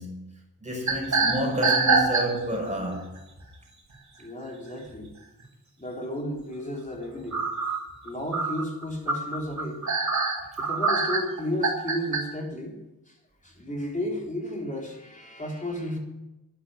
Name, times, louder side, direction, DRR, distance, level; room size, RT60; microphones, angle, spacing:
voice 1, 0.0-3.1, equal, 20° right, 5.7 m, -30 dB
sound 1, 0.9-2.6 3.2-3.4 4.9-5.0 5.4-5.5 7.3-12.2, right 4 dB, 50° right, 3.6 m, -24 dB
voice 2, 4.2-5.1 5.8-7.4 8.0-9.8 10.6-12.8 13.1-13.2 13.4-16.0, equal, 20° left, 4.2 m, -33 dB
11.0 x 10.0 x 9.8 m
wide cardioid pair, 105°, 35 cm